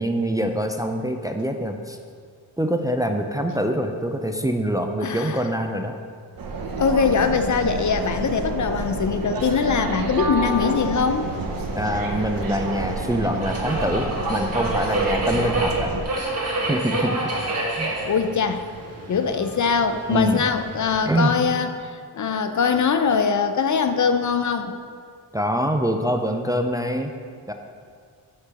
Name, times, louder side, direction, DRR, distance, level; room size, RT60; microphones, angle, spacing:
voice 1, 0.0-2.0 2.6-6.0 11.7-16.1 16.7-17.2 17.8-17.9 20.1-20.5 21.1-21.3 25.3-27.1 27.5-27.6, right 1 dB, 10° right, 5 dB, 0.5 m, -24 dB
voice 2, 5.0-5.4 6.8-11.3 18.1-18.7 19.1-24.8, left 5 dB, 45° left, 8 dB, 0.5 m, -22 dB
sound 1, 6.4-16.0, right 2 dB, 55° right, 1.0 m, -29 dB
Subway metro underground, 10.7-21.3, right 2 dB, 40° right, 1.9 m, -30 dB
6.1 x 5.5 x 7.0 m, 2.1 s
cardioid pair, 80°, 40 cm